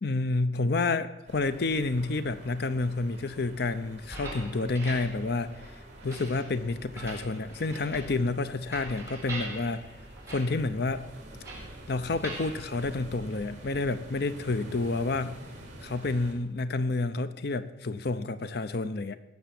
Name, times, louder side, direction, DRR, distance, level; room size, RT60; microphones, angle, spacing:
voice 1, 0.0-5.5 6.0-9.9 10.3-11.1 11.9-15.4 15.8-19.2, left 3 dB, 60° left, 13 dB, 0.7 m, -29 dB
sound 1, 1.3-16.3, right 1 dB, 40° right, 3.3 m, -47 dB
sound 2, 3.9-13.6, right 2 dB, 15° right, 4.7 m, -44 dB
18.5 x 6.9 x 7.6 m, 1.1 s
head